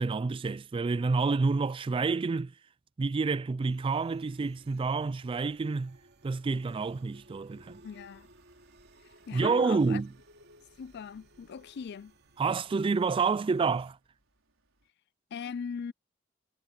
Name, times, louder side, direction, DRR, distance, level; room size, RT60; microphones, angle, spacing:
voice 1, 0.0-2.5 3.0-6.0 6.2-7.8 9.3-10.1 12.4-14.0, right 4 dB, 25° right, 0.3 m, -28 dB
sound 1, 3.6-13.9, right 1 dB, 55° right, 2.6 m, -59 dB
sound 2, 6.6-14.9, right 3 dB, 85° right, 4.9 m, -68 dB
voice 2, 7.8-8.3 9.3-10.0 10.8-12.1 15.3-15.9, left 6 dB, 55° left, 0.4 m, -39 dB
head